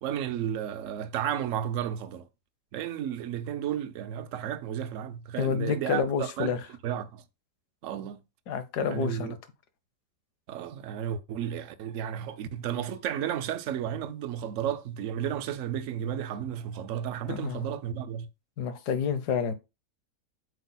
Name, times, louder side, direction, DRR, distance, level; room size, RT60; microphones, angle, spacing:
voice 1, 0.0-2.3 2.7-6.5 6.8-7.2 7.8-8.2 8.9-9.4 10.5-18.3, right 10 dB, 65° right, 0.9 m, -33 dB
voice 2, 5.4-6.6 8.5-9.4 17.3-17.6 18.6-19.5, left 6 dB, 80° left, 1.4 m, -29 dB
7.9 x 5.5 x 2.2 m
omnidirectional pair, 1.7 m